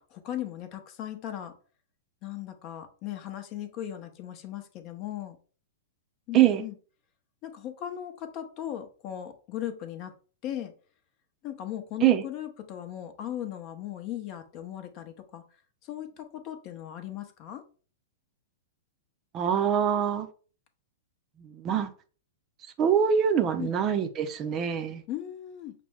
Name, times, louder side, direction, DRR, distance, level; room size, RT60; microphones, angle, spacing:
voice 1, 0.0-1.6 2.2-5.4 6.3-6.7 7.4-10.1 10.4-10.7 11.4-15.4 15.8-17.6 23.6-23.7 25.1-25.7, left 11 dB, 40° left, 0.7 m, -37 dB
voice 2, 19.3-20.3 21.4-21.9 22.8-25.0, right 9 dB, 30° right, 0.5 m, -24 dB
5.8 x 2.1 x 3.5 m
hypercardioid pair, 105°, 0 cm